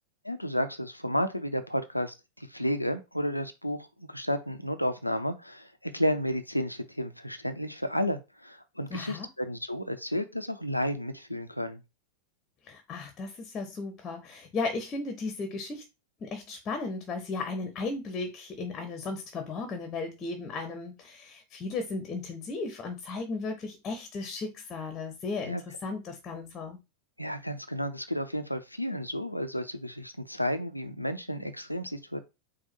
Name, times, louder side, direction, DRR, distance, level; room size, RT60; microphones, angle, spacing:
voice 1, 0.2-11.8 25.4-25.6 27.2-32.2, equal, 90° left, 0.6 m, -32 dB
voice 2, 8.9-9.3 12.6-15.8 16.2-26.8, left 3 dB, 25° left, 0.9 m, -35 dB
4.6 x 2.4 x 4.3 m
figure-of-eight pair, 90°, 0 cm